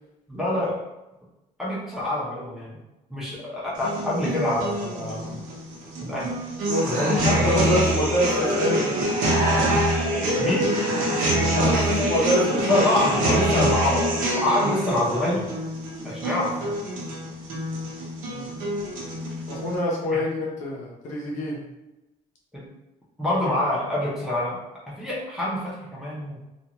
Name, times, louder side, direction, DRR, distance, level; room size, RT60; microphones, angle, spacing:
voice 1, 0.3-0.8 1.6-2.8 3.1-5.4 6.0-6.3 6.8-7.5 10.4-10.7 12.7-15.5 16.0-16.7 20.1-20.2 22.5-22.7 23.2-24.6 24.9-26.4, left 1 dB, 5° right, -7 dB, 0.6 m, -26 dB
sound 1, 3.7-19.7, right 1 dB, 80° right, 0.8 m, -25 dB
voice 2, 6.7-9.0 11.1-12.9 18.3-18.5 19.5-21.6, left 1 dB, 60° left, -3 dB, 0.8 m, -26 dB
2.5 x 2.3 x 2.9 m, 0.98 s
cardioid pair, 180°, 14 cm